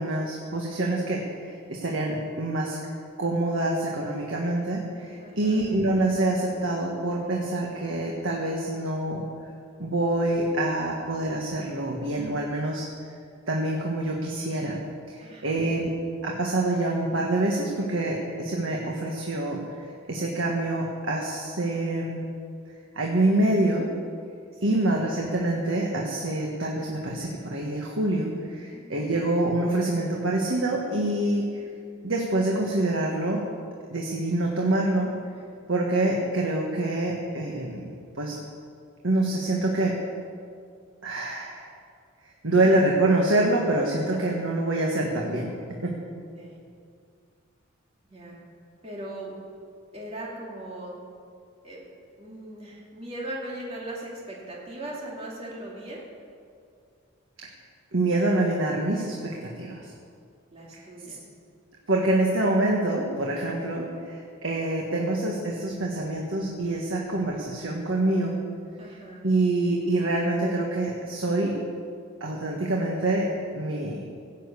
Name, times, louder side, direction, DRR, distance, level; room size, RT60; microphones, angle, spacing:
voice 1, 0.0-2.8 3.2-9.2 9.8-12.9 13.5-14.8 15.1-15.9 16.2-22.2 22.9-23.9 24.6-31.6 32.0-33.4 33.9-35.1 35.7-37.9 38.2-38.4 39.0-40.0 41.0-41.7 42.4-45.5 45.8-45.9 57.4-57.5 57.9-59.9 60.7-60.8 61.9-68.4 69.2-71.6 72.2-74.1, right 2 dB, 70° right, -1 dB, 1.6 m, -26 dB
voice 2, 5.2-5.7 15.2-15.6 24.5-24.8 28.7-29.2 35.6-35.8 42.5-42.7 44.1-44.2 46.4-46.6 48.1-48.4 48.8-49.3 49.9-50.9 51.6-51.9 52.2-56.0 60.5-61.2 68.8-69.2, right 1 dB, 30° right, -4 dB, 2.6 m, -39 dB
16.5 x 7.5 x 8.5 m, 2.3 s
head